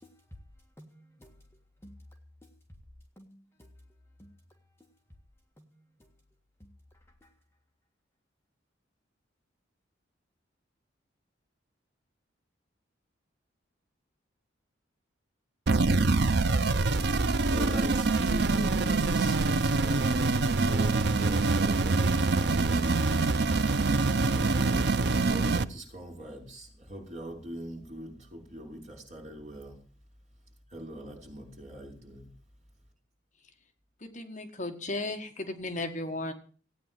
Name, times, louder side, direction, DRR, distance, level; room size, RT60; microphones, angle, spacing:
voice 1, 0.8-1.3 1.8-2.0 2.4-2.5 3.2-3.7 4.2-4.3 5.6-6.1 6.6-6.7 7.2-7.3, equal, 15° left, 1.7 m, -54 dB
sound 1, 15.7-25.6, right 3 dB, 55° right, 0.7 m, -25 dB
voice 2, 17.4-22.9 24.2-29.8 30.7-32.3, right 1 dB, 35° right, 5.8 m, -42 dB
voice 3, 34.0-36.3, left 2 dB, 40° left, 1.8 m, -35 dB
16.5 x 9.5 x 7.6 m
head